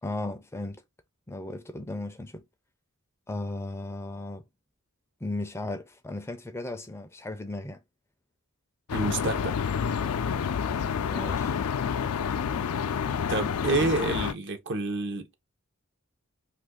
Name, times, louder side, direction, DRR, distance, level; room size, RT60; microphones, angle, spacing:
voice 1, 0.0-0.8 1.3-2.4 3.3-4.4 5.2-7.8 11.0-11.6, left 2 dB, 10° left, 0.4 m, -36 dB
sound 1, 8.9-14.3, left 7 dB, 80° left, 0.4 m, -29 dB
voice 2, 8.9-9.6 13.3-15.3, right 3 dB, 55° right, 0.7 m, -28 dB
2.6 x 2.5 x 3.6 m
head